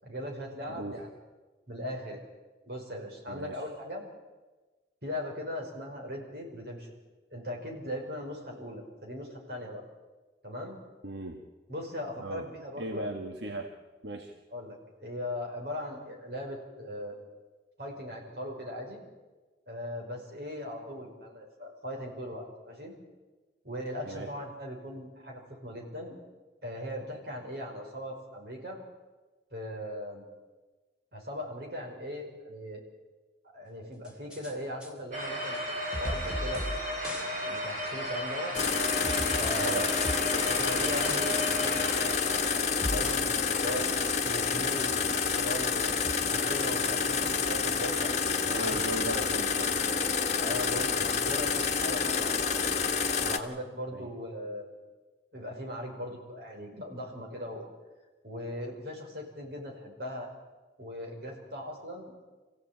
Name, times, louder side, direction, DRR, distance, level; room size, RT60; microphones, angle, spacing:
voice 1, 0.0-1.1 1.7-2.3 2.7-4.0 5.0-7.0 7.3-9.8 10.4-10.8 11.7-13.0 14.5-17.2 17.8-19.0 19.7-22.9 23.6-26.1 26.6-28.8 29.5-30.3 31.1-32.8 33.5-36.7 37.4-38.6 39.4-40.0 40.3-41.9 42.9-43.9 44.2-46.0 46.3-48.1 48.4-48.8 50.4-52.7 53.2-54.7 55.3-57.7 58.2-60.3 60.8-62.1, left 1 dB, 65° right, 0 dB, 5.4 m, -39 dB
voice 2, 3.3-3.6 11.0-11.4 12.2-12.4 12.8-13.7 14.0-14.3 24.1-24.3 39.6-39.9 48.5-49.8 50.7-50.8 53.9-54.1, right 2 dB, 85° right, 3 dB, 1.6 m, -37 dB
sound 1, 34.0-34.5 34.8-34.9 35.5-35.6 35.9-36.8 37.0-37.3 37.5-37.6 38.0-38.1 38.5-40.5 40.8-41.2 41.5-41.6 42.0-43.3 43.5-44.2 44.8-45.7 46.0-46.9, left 1 dB, 5° right, 3.2 m, -39 dB
sound 2, 35.1-42.6, equal, 45° right, 6.7 m, -34 dB
sound 3, 38.6-53.4, left 5 dB, 40° left, 1.3 m, -28 dB
25.0 x 16.0 x 9.0 m, 1.3 s
head